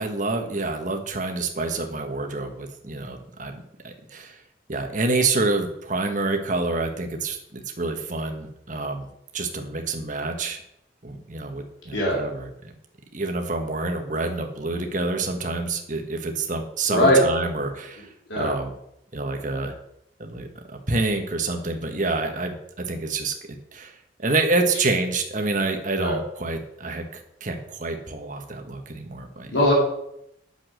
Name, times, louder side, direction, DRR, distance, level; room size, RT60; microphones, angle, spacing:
voice 1, 0.0-4.4 4.7-9.1 9.3-10.6 11.0-12.5 13.1-18.1 18.3-18.7 19.1-19.7 20.2-23.3 23.7-23.9 24.2-29.6, right 3 dB, 40° right, 4 dB, 1.4 m, -27 dB
voice 2, 11.9-12.2 16.9-17.2 18.3-18.5 25.9-26.1 29.5-29.7, left 1 dB, 65° left, -4 dB, 3.7 m, -19 dB
9.1 x 7.3 x 6.5 m, 0.79 s
head